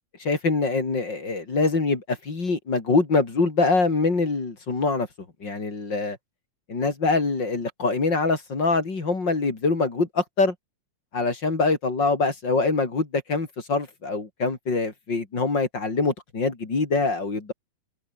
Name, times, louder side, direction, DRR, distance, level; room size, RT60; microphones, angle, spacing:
voice 1, 0.2-5.1 5.4-6.2 6.7-10.5 11.1-17.5, left 3 dB, 35° left, 3.9 m, -24 dB
omnidirectional pair, 3.8 m